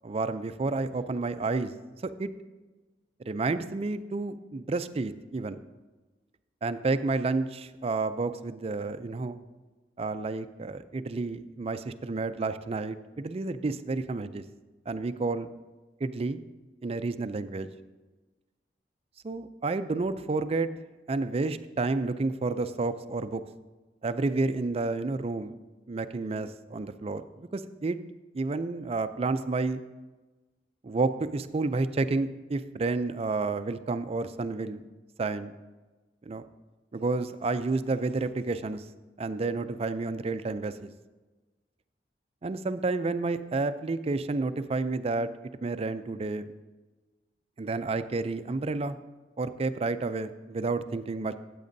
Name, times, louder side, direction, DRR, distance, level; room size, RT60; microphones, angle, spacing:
voice 1, 0.0-1.7 2.0-2.3 3.3-5.6 6.6-9.4 10.0-14.4 14.9-15.5 16.0-16.4 16.8-17.7 19.2-20.7 21.1-23.4 24.0-25.5 25.9-28.0 28.3-29.8 30.8-34.8 35.2-35.5 36.3-36.4 36.9-38.8 39.2-40.9 42.4-45.3 45.6-46.4 47.6-49.0 49.4-51.3, right 3 dB, 35° right, 11 dB, 0.4 m, -30 dB
14.0 x 8.4 x 2.7 m, 1.2 s
head